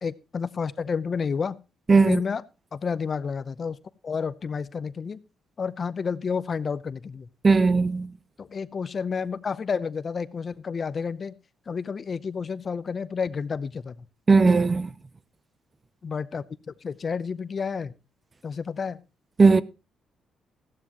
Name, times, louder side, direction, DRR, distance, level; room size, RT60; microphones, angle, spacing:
voice 1, 0.0-1.6 2.1-2.4 2.7-3.8 4.0-5.2 5.6-7.3 8.4-11.3 11.7-14.1 16.0-17.9 18.4-19.0, left 5 dB, 40° left, 0.7 m, -30 dB
voice 2, 1.9-2.2 7.4-8.1 14.3-14.9 19.4-19.6, right 4 dB, 30° right, 0.6 m, -18 dB
14.5 x 12.5 x 3.0 m
cardioid pair, 90°, 0 cm